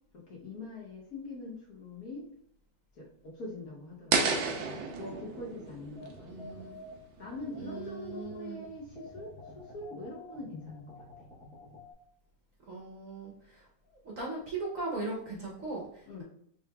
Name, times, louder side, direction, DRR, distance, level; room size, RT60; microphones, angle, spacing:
voice 1, 0.1-2.2 2.9-4.4 4.6-6.6 7.2-11.1 16.1-16.2, left 2 dB, 55° left, -3 dB, 1.2 m, -43 dB
sound 1, 4.1-7.1, right 4 dB, 90° right, 1.4 m, -32 dB
sound 2, 6.0-11.9, left 2 dB, 10° left, 0.4 m, -50 dB
voice 2, 6.3-6.7 7.6-8.6 12.7-13.6 14.0-16.2, right 3 dB, 55° right, -3 dB, 1.1 m, -39 dB
5.7 x 3.0 x 2.3 m, 0.67 s
omnidirectional pair, 2.1 m